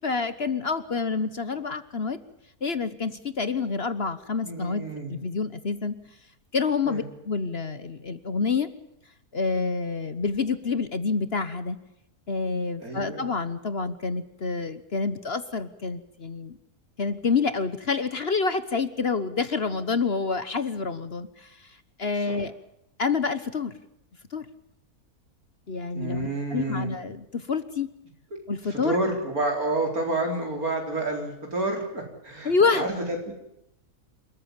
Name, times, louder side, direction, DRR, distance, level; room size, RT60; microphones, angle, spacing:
voice 1, 0.0-2.2 2.6-4.8 5.1-6.0 6.5-8.7 9.3-11.8 12.3-16.6 17.0-21.7 22.0-22.5 23.0-23.7 24.3-24.5 25.7-27.9 28.5-29.0 32.4-32.9, left 4 dB, 45° left, 13 dB, 1.3 m, -27 dB
voice 2, 4.4-5.2 6.9-7.0 12.8-13.3 22.3-22.4 25.9-26.9 28.7-33.3, right 2 dB, 70° right, 2 dB, 4.6 m, -29 dB
28.0 x 14.0 x 8.9 m, 0.83 s
omnidirectional pair, 1.6 m